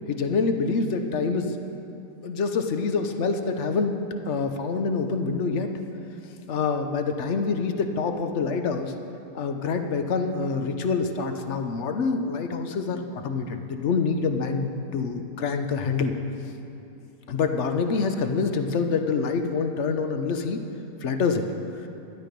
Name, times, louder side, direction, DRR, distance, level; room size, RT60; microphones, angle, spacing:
voice 1, 0.1-1.6 2.2-4.0 4.2-5.7 6.2-8.9 9.3-16.1 17.3-20.6 21.0-21.4, left 4 dB, 55° left, 6 dB, 0.9 m, -26 dB
12.0 x 11.0 x 5.2 m, 2.8 s
omnidirectional pair, 1.8 m